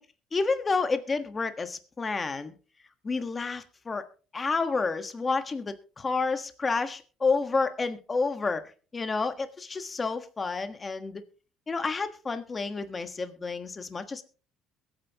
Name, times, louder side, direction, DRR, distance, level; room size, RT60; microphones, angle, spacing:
voice 1, 0.3-2.5 3.0-4.0 4.3-11.2 11.7-14.2, left 4 dB, 25° left, 9 dB, 1.4 m, -30 dB
22.5 x 9.2 x 2.9 m, 0.37 s
cardioid pair, 125°, 0 cm